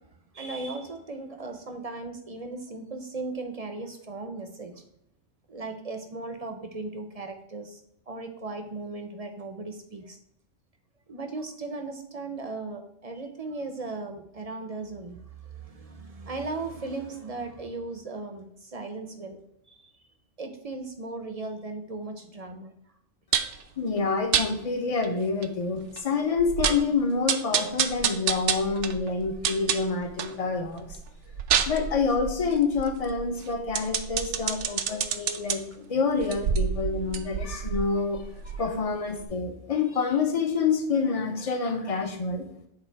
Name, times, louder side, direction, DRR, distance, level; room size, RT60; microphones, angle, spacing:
voice 1, 0.3-4.8 5.5-7.8 8.1-10.2 11.1-19.4 19.7-19.8 20.4-22.7, right 3 dB, 40° right, 6 dB, 0.7 m, -37 dB
sound 1, 23.3-23.6 24.3-24.5 25.0-25.1 25.4-25.5 26.0-26.1 26.4-26.9 27.3-30.4 30.8-35.6 36.2-38.9 39.2-39.3, right 8 dB, 70° right, 0.9 m, -28 dB
voice 2, 23.8-30.9 31.7-38.2 38.6-42.5, left 4 dB, 35° left, 5 dB, 0.8 m, -27 dB
8.7 x 3.5 x 4.5 m, 0.76 s
omnidirectional pair, 1.3 m